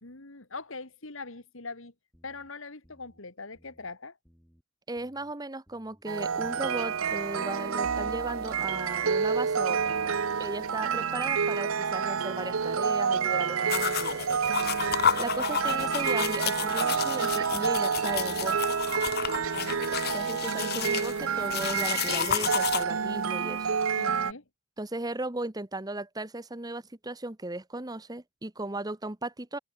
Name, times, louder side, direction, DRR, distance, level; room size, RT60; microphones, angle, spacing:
voice 1, 0.0-1.9 2.2-4.2 19.3-19.8 24.0-24.4, left 3 dB, 65° left, 2.3 m, -42 dB
sound 1, 2.1-2.5 2.8-3.2 3.5-3.9 4.2-4.6 5.0-5.3 5.7-6.0 6.4-6.7 7.1-7.4, equal, ahead, 6.1 m, -62 dB
voice 2, 4.9-14.3 15.2-18.6 20.1-23.7 24.8-29.6, right 2 dB, 20° right, 1.1 m, -36 dB
sound 2, 6.1-24.3, right 6 dB, 70° right, 0.7 m, -29 dB
sound 3, 13.7-22.8, left 8 dB, 50° left, 1.0 m, -31 dB
head